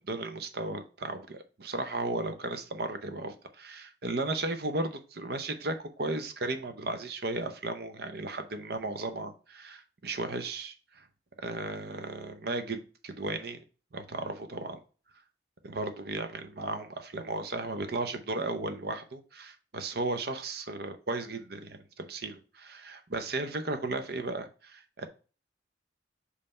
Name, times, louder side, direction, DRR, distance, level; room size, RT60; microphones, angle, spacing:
voice 1, 0.0-11.0 11.4-13.6 13.9-14.8 15.6-25.1, right 2 dB, 60° right, 0.8 m, -35 dB
5.4 x 3.4 x 5.3 m
head